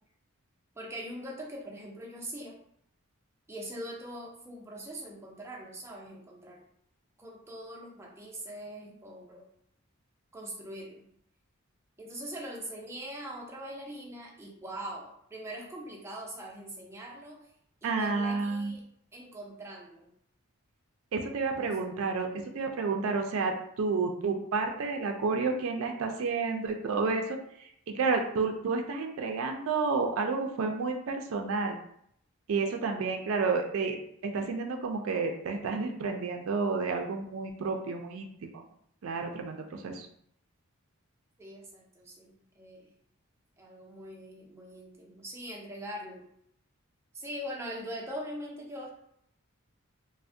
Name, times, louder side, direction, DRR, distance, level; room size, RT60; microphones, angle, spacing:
voice 1, 0.7-2.6 3.5-6.6 7.2-9.5 10.3-11.1 12.0-17.5 17.8-18.8 19.1-20.1 21.6-21.8 41.4-42.9 43.6-46.3 47.1-48.9, right 1 dB, 10° right, -3 dB, 0.5 m, -42 dB
voice 2, 17.8-18.7 21.1-31.8 32.5-34.0 34.2-38.6 39.0-40.1, right 4 dB, 70° right, 4 dB, 0.4 m, -30 dB
3.2 x 2.1 x 2.6 m, 0.69 s
head